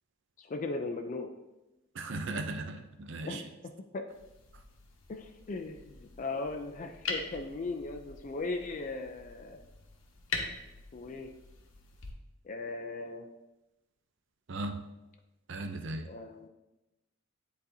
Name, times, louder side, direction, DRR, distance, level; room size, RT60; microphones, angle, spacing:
voice 1, 0.4-1.3 3.2-4.0 5.1-9.6 10.9-11.3 12.4-13.3 16.0-16.5, left 3 dB, 40° left, 5 dB, 0.4 m, -38 dB
voice 2, 1.9-3.4 14.5-14.8 15.5-16.1, right 2 dB, 60° right, 6 dB, 0.6 m, -37 dB
sound 1, 4.1-12.1, left 4 dB, 65° left, 1.0 m, -43 dB
10.0 x 4.1 x 2.7 m, 0.99 s
head